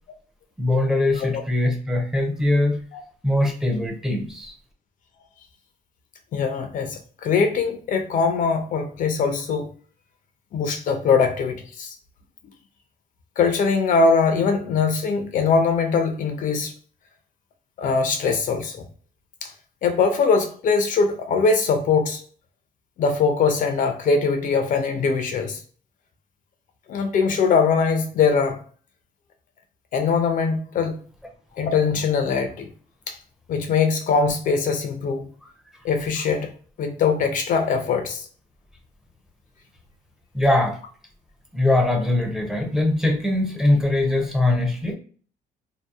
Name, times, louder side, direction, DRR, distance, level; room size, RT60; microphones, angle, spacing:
voice 1, 0.6-2.8 3.2-4.5 40.3-40.8 41.5-44.9, left 2 dB, 5° right, 0.5 m, -21 dB
voice 2, 6.3-9.7 10.5-11.9 13.4-16.7 17.8-18.8 19.4-19.5 19.8-22.2 23.0-25.6 26.9-28.6 29.9-31.0 31.6-32.7 33.1-33.2 33.5-35.3 35.8-36.5 36.8-38.3, left 5 dB, 50° left, 0.4 m, -22 dB
2.7 x 2.0 x 2.3 m
cardioid pair, 110°, 17 cm